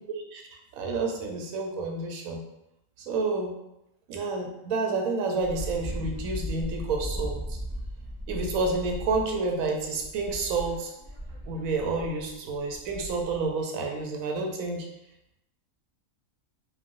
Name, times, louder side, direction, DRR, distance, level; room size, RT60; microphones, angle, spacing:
voice 1, 0.7-2.4 3.0-3.5 4.1-7.6 8.3-10.9 11.5-14.9, right 3 dB, 85° right, 2 dB, 1.0 m, -29 dB
Wind, 5.4-13.5, equal, 40° right, 0.8 m, -37 dB
3.0 x 2.4 x 2.6 m, 0.86 s
omnidirectional pair, 1.4 m